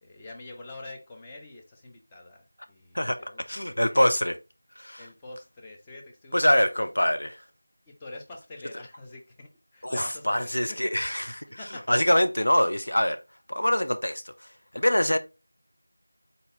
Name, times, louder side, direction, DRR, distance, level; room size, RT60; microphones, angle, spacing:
voice 1, 0.0-3.4 3.7-4.0 5.0-6.8 7.9-10.9 11.2-12.2, left 2 dB, 10° left, 0.5 m, -45 dB
voice 2, 3.5-4.4 4.8-5.1 6.3-7.4 9.8-13.2 13.5-14.5 14.7-15.2, left 1 dB, 70° left, 0.7 m, -24 dB
4.1 x 3.9 x 2.7 m
figure-of-eight pair, 175°, 0 cm